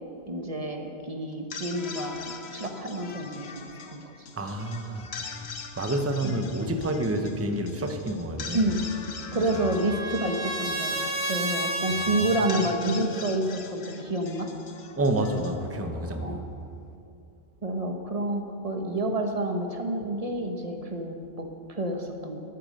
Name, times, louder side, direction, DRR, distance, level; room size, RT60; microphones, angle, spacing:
voice 1, 0.3-2.2 2.5-4.3 6.2-6.4 8.5-8.9 9.3-14.5 16.2-16.5 17.6-22.4, right 1 dB, 35° right, 4 dB, 1.1 m, -29 dB
sound 1, 1.3-16.6, left 5 dB, 65° left, 1.1 m, -43 dB
voice 2, 4.3-5.1 5.8-8.7 9.5-9.7 12.3-12.4 15.0-16.5, right 1 dB, 15° right, 5 dB, 0.7 m, -29 dB
Trumpet, 8.8-12.7, right 1 dB, 50° right, 1.6 m, -32 dB
12.0 x 10.5 x 6.5 m, 2.5 s
omnidirectional pair, 1.2 m